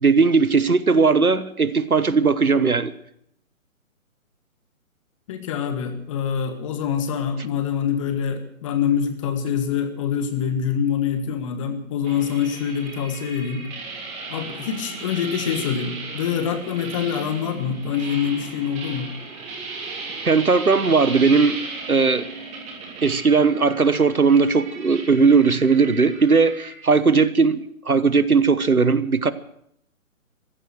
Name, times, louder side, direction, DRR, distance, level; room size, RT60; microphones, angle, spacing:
voice 1, 0.0-2.9 20.2-21.6 21.9-22.3 23.0-27.6 27.9-29.3, right 4 dB, 85° right, 15 dB, 1.2 m, -18 dB
voice 2, 5.3-13.6 14.3-19.1, left 8 dB, 25° left, 8 dB, 1.4 m, -25 dB
sound 1, 12.0-26.7, right 3 dB, 15° right, 3.5 m, -36 dB
15.0 x 12.5 x 7.8 m, 0.73 s
figure-of-eight pair, 135°, 42 cm